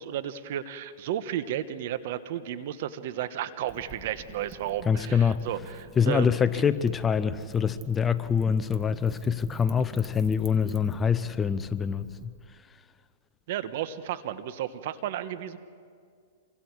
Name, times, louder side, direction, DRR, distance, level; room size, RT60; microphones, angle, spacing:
voice 1, 0.0-6.4 13.5-15.6, right 11 dB, 60° right, 11 dB, 1.2 m, -33 dB
Wind / Fire, 3.7-12.3, right 3 dB, 20° right, 2.1 m, -47 dB
voice 2, 4.9-5.5 6.0-12.3, left 7 dB, 20° left, 13 dB, 0.7 m, -25 dB
27.5 x 24.5 x 4.8 m, 2.1 s
hypercardioid pair, 125°, 0 cm